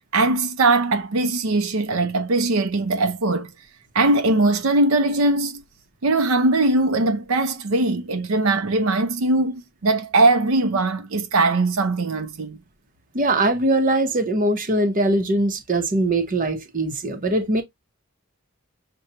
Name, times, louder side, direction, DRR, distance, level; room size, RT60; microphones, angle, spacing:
voice 1, 0.1-3.5 3.9-5.6 6.0-12.6, right 2 dB, 75° right, 0.6 m, -20 dB
voice 2, 13.1-17.6, right 1 dB, 40° right, 0.8 m, -21 dB
6.6 x 2.2 x 2.8 m
head